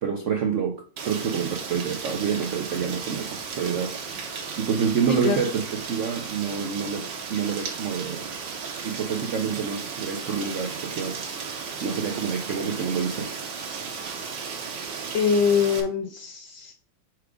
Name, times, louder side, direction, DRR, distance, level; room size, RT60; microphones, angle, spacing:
voice 1, 0.0-8.4 8.8-11.2 11.8-13.3, right 6 dB, 90° right, 4 dB, 0.6 m, -28 dB
Rain, 1.0-15.8, right 5 dB, 65° right, 1.7 m, -35 dB
voice 2, 15.1-16.7, left 6 dB, 75° left, 3 dB, 1.4 m, -23 dB
5.0 x 4.6 x 4.7 m, 0.42 s
omnidirectional pair, 2.1 m